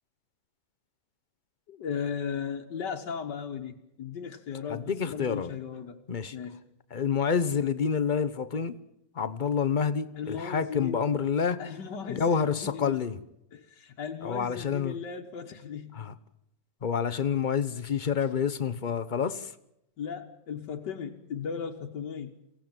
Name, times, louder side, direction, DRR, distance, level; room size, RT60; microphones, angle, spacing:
voice 1, 1.7-6.0 6.3-6.6 10.1-11.1 11.6-13.0 13.5-16.0 20.0-22.4, left 7 dB, 85° left, 1.9 m, -36 dB
voice 2, 4.7-5.5 6.1-6.3 6.9-8.8 9.2-11.6 12.1-13.2 14.2-15.0 15.9-16.1 16.8-19.5, left 6 dB, 40° left, 0.8 m, -28 dB
23.5 x 16.5 x 9.0 m
omnidirectional pair, 1.8 m